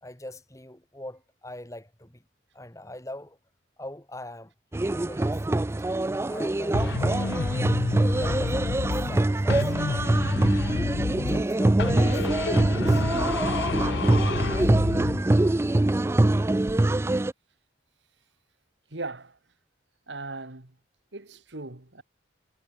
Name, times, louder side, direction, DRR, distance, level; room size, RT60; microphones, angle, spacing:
voice 1, 0.0-2.2 2.5-3.4 3.8-4.5 4.9-5.4 6.3-7.4 8.2-10.4 11.3-13.0, left 1 dB, 15° left, 4.4 m, -42 dB
sound 1, 4.7-17.3, right 2 dB, 15° right, 0.3 m, -24 dB
sound 2, 6.7-9.2 9.5-11.5 11.8-15.2, left 4 dB, 65° left, 0.5 m, -29 dB
voice 2, 18.9-19.4 20.1-20.7 21.1-22.0, right 3 dB, 75° right, 2.2 m, -38 dB
head